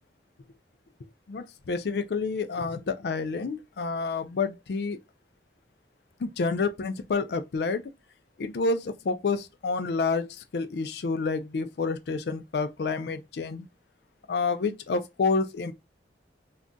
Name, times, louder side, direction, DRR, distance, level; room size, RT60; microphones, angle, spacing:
voice 1, 1.3-5.0 6.2-7.8 8.4-13.7 14.3-15.7, left 4 dB, 70° left, 0.4 m, -29 dB
2.4 x 2.2 x 3.8 m
head